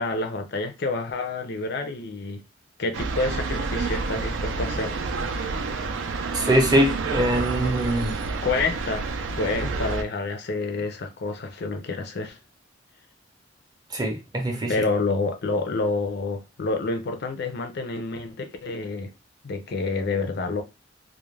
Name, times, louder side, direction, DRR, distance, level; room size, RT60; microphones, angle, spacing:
voice 1, 0.0-2.4 2.8-5.0 8.4-9.1 9.4-12.4 14.7-19.1 19.4-20.6, left 3 dB, 60° left, 0.5 m, -28 dB
sound 1, 2.9-10.0, right 4 dB, 85° right, 0.4 m, -29 dB
voice 2, 6.3-8.1 13.9-14.7, right 1 dB, 20° right, 0.5 m, -22 dB
2.4 x 2.1 x 3.1 m
head